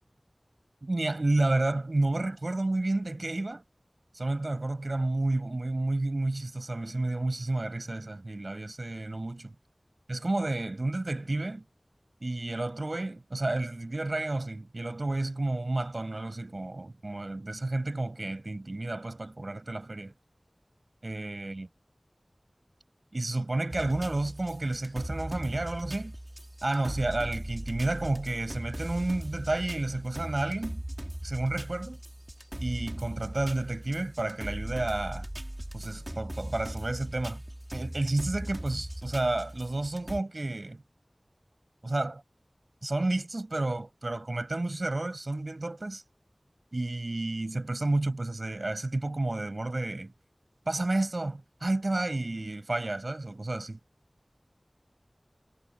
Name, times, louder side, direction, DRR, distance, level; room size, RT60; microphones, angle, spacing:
voice 1, 0.8-3.6 4.1-9.5 10.1-11.6 12.2-20.1 21.0-21.7 23.1-26.1 26.6-30.8 31.2-32.0 32.6-35.3 35.7-37.4 37.7-40.8 41.8-42.2 42.8-46.0 46.7-50.1 50.7-53.8, right 2 dB, 70° right, 7.4 m, -31 dB
sound 1, 23.7-40.2, right 1 dB, 25° right, 5.1 m, -39 dB
wide cardioid pair, 45°, 0 cm